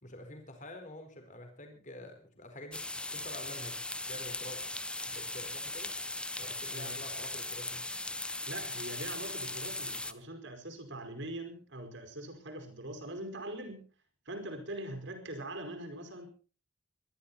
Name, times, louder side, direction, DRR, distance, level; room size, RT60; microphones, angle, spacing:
voice 1, 0.0-3.8 4.1-4.6 5.1-5.9 6.4-7.9, left 1 dB, 35° left, 5 dB, 4.6 m, -48 dB
sound 1, 2.7-10.1, left 2 dB, 5° left, 0.7 m, -38 dB
voice 2, 8.4-13.9 14.2-16.3, right 1 dB, 55° right, 6 dB, 5.0 m, -42 dB
22.0 x 13.5 x 4.2 m, 0.38 s
head